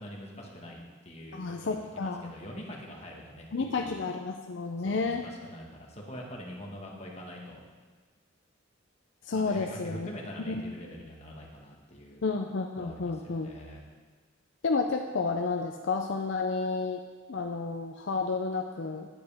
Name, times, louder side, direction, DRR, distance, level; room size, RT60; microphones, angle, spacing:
voice 1, 0.0-3.5 3.7-4.0 4.8-7.6 9.3-12.2 12.8-13.8, equal, 35° left, -1 dB, 1.5 m, -44 dB
voice 2, 1.3-2.3 3.5-5.2 9.3-10.1 10.4-10.7 12.2-13.5 14.6-17.0 17.3-19.1, left 4 dB, 65° left, 3 dB, 0.5 m, -31 dB
9.5 x 9.5 x 3.5 m, 1.4 s
head